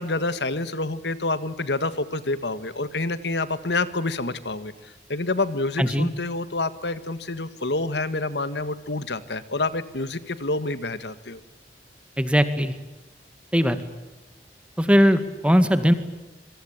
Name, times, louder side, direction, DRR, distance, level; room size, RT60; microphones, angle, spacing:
voice 1, 0.0-11.4, left 2 dB, 75° left, 13 dB, 1.8 m, -28 dB
voice 2, 12.2-12.7 13.5-13.8 14.8-15.9, equal, 5° right, 10 dB, 2.0 m, -19 dB
26.0 x 23.5 x 9.0 m, 1.1 s
head